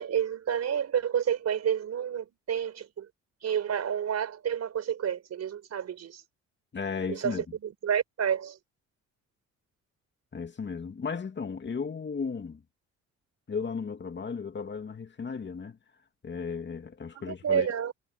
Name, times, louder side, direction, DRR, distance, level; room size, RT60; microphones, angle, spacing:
voice 1, 0.0-3.1 3.4-6.2 7.1-8.6 17.1-17.9, right 8 dB, 60° right, 4.5 m, -30 dB
voice 2, 6.7-7.4 10.3-12.6 13.5-15.8 16.2-17.7, left 5 dB, 35° left, 2.4 m, -35 dB
cardioid pair, 90°, 30 cm